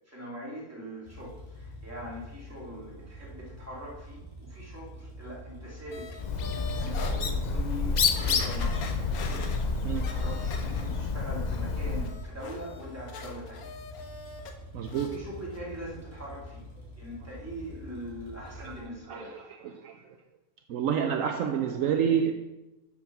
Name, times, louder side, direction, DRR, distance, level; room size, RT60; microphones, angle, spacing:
voice 1, 0.1-8.9 9.1-9.5 9.8-13.7 15.1-16.6 17.0-19.4, equal, 10° right, 2.4 m, -42 dB
sound 1, 1.1-18.9, left 1 dB, 40° left, 3.0 m, -46 dB
sound 2, 5.9-7.2 7.7-7.8 8.2-11.1 11.5-14.5 14.8-15.2 15.5-15.6, left 5 dB, 85° left, 1.4 m, -43 dB
Bird, 6.2-12.2, left 4 dB, 55° left, 0.4 m, -29 dB
voice 2, 14.7-15.2 18.6-18.7 19.1-20.0 20.7-22.3, right 8 dB, 70° right, 1.0 m, -28 dB
7.0 x 6.0 x 5.9 m
omnidirectional pair, 1.5 m